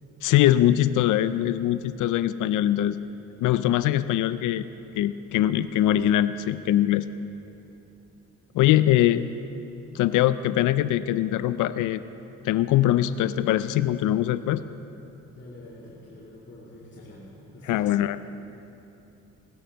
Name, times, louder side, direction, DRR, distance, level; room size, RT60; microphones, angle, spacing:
voice 1, 0.2-3.0 3.4-4.7 5.0-7.1 8.5-9.2 9.9-12.0 12.4-14.6 17.7-18.2, left 13 dB, 85° left, 14 dB, 0.5 m, -22 dB
voice 2, 5.4-5.8 8.8-9.4 10.0-10.2 15.3-18.0, left 1 dB, 40° left, -6 dB, 2.8 m, -45 dB
18.5 x 11.0 x 6.4 m, 2.8 s
cardioid pair, 90°, 30 cm